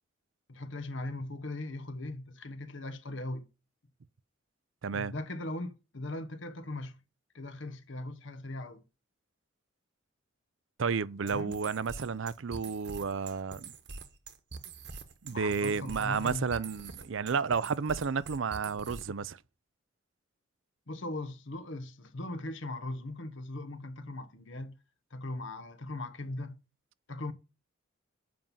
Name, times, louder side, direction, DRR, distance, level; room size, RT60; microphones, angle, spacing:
voice 1, 0.5-3.5 4.9-7.0 7.3-8.8 11.2-11.6 15.3-16.6 20.9-24.7 25.1-26.6 27.1-27.3, left 2 dB, 65° left, 1.1 m, -39 dB
voice 2, 4.8-5.1 10.8-13.7 15.2-19.4, right 5 dB, 70° right, 0.5 m, -32 dB
sound 1, 11.3-19.3, right 4 dB, 55° right, 1.2 m, -45 dB
7.7 x 5.4 x 7.3 m
head